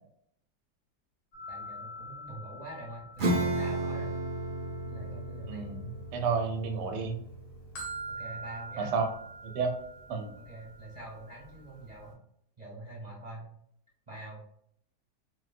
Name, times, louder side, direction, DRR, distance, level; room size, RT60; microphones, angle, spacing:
sound 1, 1.3-6.5 6.7-12.1, right 1 dB, 75° left, 1.6 m, -45 dB
voice 1, 1.5-4.1 4.8-6.0 8.1-8.9 10.4-12.3 12.6-13.5 14.1-14.4, right 1 dB, 30° right, -5 dB, 0.8 m, -45 dB
Acoustic guitar / Strum, 3.2-9.2, right 1 dB, 65° right, 0.5 m, -34 dB
voice 2, 6.1-7.2 8.8-9.1 9.4-9.7 10.1-10.3, right 5 dB, 85° right, 4 dB, 1.2 m, -30 dB
4.3 x 2.1 x 2.4 m, 0.70 s
omnidirectional pair, 1.8 m